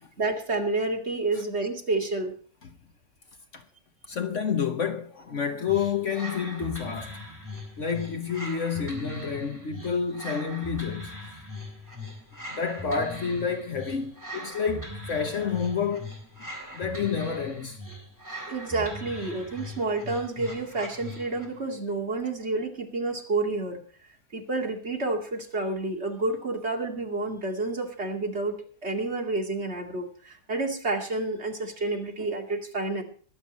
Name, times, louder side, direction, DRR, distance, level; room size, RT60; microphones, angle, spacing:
voice 1, 0.2-2.4 18.5-23.8 24.3-33.0, right 2 dB, 40° right, 2.7 m, -29 dB
voice 2, 4.1-7.2 7.8-11.2 12.5-16.1 16.7-17.8, left 6 dB, 50° left, 1.3 m, -29 dB
sound 1, 5.7-21.6, left 1 dB, 10° right, 4.0 m, -40 dB
22.5 x 8.1 x 4.2 m
omnidirectional pair, 1.7 m